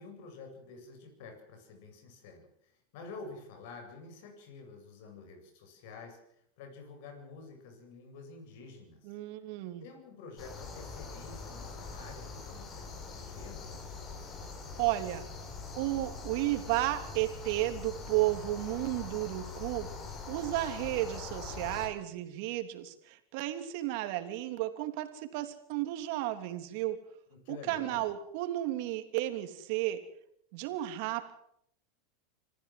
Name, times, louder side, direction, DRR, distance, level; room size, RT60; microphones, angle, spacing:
voice 1, 0.0-9.1 9.8-13.7 27.3-28.1, left 4 dB, 65° left, 5 dB, 8.0 m, -49 dB
voice 2, 9.0-9.8 14.8-15.2 15.7-19.9 20.3-27.0 27.5-30.0 30.5-31.3, right 15 dB, 60° right, 8 dB, 3.1 m, -33 dB
sound 1, 10.4-21.9, left 4 dB, 35° left, 6.7 m, -43 dB
26.5 x 15.0 x 7.8 m, 0.72 s
hypercardioid pair, 110°, 0 cm